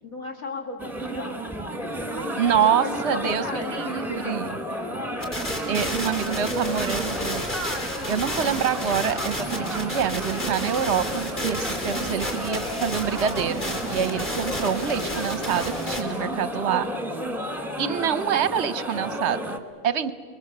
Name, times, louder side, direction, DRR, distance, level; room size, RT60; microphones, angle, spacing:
voice 1, 0.0-1.5 1.9-4.9 6.6-6.7 14.3-14.4 18.2-18.3 20.0-20.1, left 3 dB, 60° left, 3 dB, 2.8 m, -36 dB
sound 1, 0.8-19.6, equal, ahead, 1.2 m, -32 dB
voice 2, 2.4-4.5 5.7-7.5 8.1-13.6 13.9-16.9 17.8-20.1, right 8 dB, 55° right, 14 dB, 0.9 m, -26 dB
sound 2, 5.2-16.0, left 1 dB, 30° left, 3.5 m, -32 dB
sound 3, 9.9-15.4, right 3 dB, 80° left, 4.5 m, -49 dB
29.5 x 22.0 x 6.7 m, 2.2 s
omnidirectional pair, 1.7 m